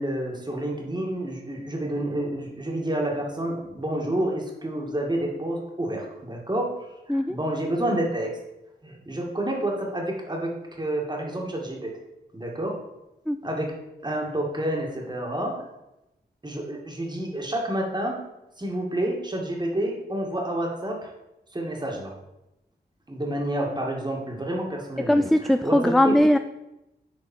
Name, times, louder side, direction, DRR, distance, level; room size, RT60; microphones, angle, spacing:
voice 1, 0.0-6.7 7.1-8.4 8.8-10.5 10.8-12.0 12.3-12.8 13.4-13.7 14.0-15.6 16.4-18.2 18.6-21.1 21.5-22.1 23.1-26.2, right 1 dB, 25° right, -1 dB, 2.2 m, -29 dB
voice 2, 25.1-26.4, left 1 dB, ahead, 9 dB, 0.3 m, -20 dB
8.7 x 4.6 x 4.5 m, 0.92 s
cardioid pair, 65°, 18 cm